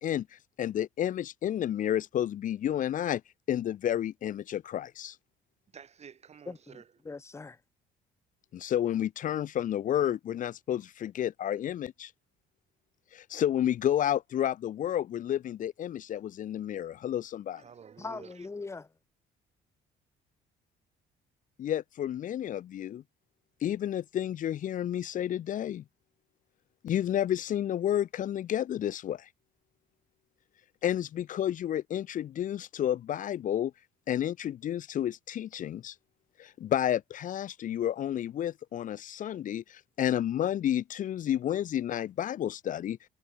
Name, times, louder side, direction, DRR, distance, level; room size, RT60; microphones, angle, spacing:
voice 1, 0.0-3.2 3.5-5.2 8.5-12.1 13.1-17.6 21.6-23.0 23.6-25.8 26.8-29.3 30.8-33.7 34.1-35.9 36.4-43.0, left 11 dB, 50° left, 0.8 m, -31 dB
voice 2, 5.7-6.9 17.5-18.5, right 7 dB, 40° right, 4.7 m, -50 dB
voice 3, 6.5-7.6 18.0-18.9, left 3 dB, 15° left, 0.8 m, -41 dB
cardioid pair, 110°, 17 cm